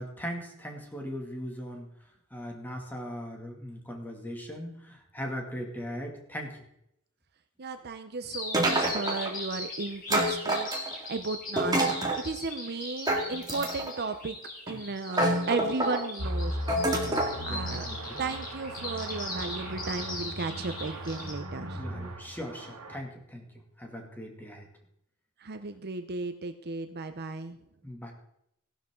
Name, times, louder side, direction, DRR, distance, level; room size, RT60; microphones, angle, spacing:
voice 1, 0.0-1.9 2.3-6.6 17.0-18.3 21.7-23.5 23.8-24.7 27.8-28.1, equal, 10° left, 1 dB, 2.4 m, -39 dB
voice 2, 7.6-10.7 11.1-14.4 14.7-16.6 17.5-17.9 18.2-21.8 25.4-27.6, right 3 dB, 45° right, 8 dB, 0.7 m, -35 dB
Bird vocalization bird call bird song, 8.3-21.3, left 2 dB, 40° left, 4.1 m, -39 dB
sound 1, 8.5-9.3 10.1-11.1 11.6-12.2 13.1-14.0 14.7-14.8 15.1-16.0 16.7-17.4, right 1 dB, 20° right, 2.2 m, -27 dB
sound 2, 16.2-23.0, equal, 70° right, 2.2 m, -37 dB
15.5 x 11.5 x 3.8 m, 0.76 s
head